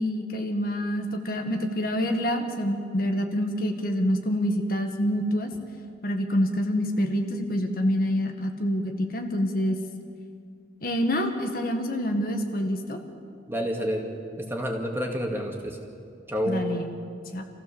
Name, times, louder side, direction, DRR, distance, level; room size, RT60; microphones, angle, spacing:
voice 1, 0.0-5.5 6.0-9.8 10.8-13.0 16.4-16.9 17.3-17.4, equal, 50° left, 4 dB, 1.6 m, -26 dB
voice 2, 13.5-14.1 14.4-15.8 16.3-16.7, equal, 15° right, 1 dB, 2.1 m, -29 dB
26.5 x 15.5 x 7.1 m, 2.4 s
head